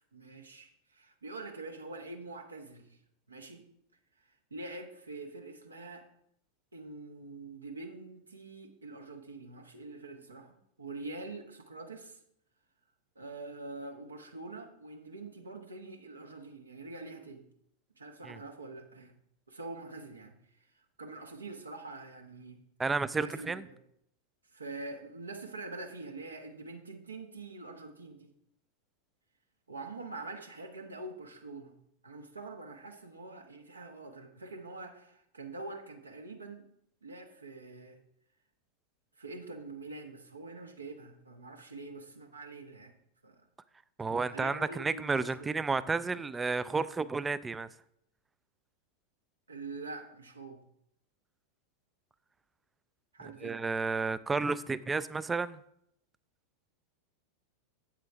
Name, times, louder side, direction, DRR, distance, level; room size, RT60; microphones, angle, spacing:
voice 1, 0.0-3.0 3.3-3.6 4.5-6.1 6.7-12.2 13.1-17.4 18.0-19.1 19.5-20.3 21.0-22.6 23.1-23.8 24.5-28.3 29.7-31.8 32.0-36.6 37.0-38.0 39.2-42.9 43.2-43.4 44.3-45.5 49.5-50.6 53.1-53.6, right 3 dB, 75° right, 4 dB, 1.1 m, -45 dB
voice 2, 22.8-23.7 44.0-47.7 53.4-55.6, right 4 dB, 15° right, 17 dB, 0.3 m, -31 dB
8.3 x 7.4 x 3.4 m, 0.74 s
figure-of-eight pair, 90°, 0 cm